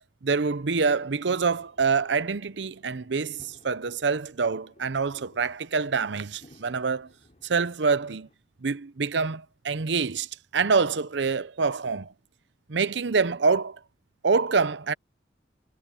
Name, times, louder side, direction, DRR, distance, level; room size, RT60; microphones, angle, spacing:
voice 1, 0.0-7.1 7.4-8.3 8.6-10.3 10.5-12.1 12.7-13.8 14.2-14.9, right 4 dB, 75° right, 0.7 m, -26 dB
sound 1, 0.6-8.3, left 1 dB, 40° left, 4.8 m, -59 dB
head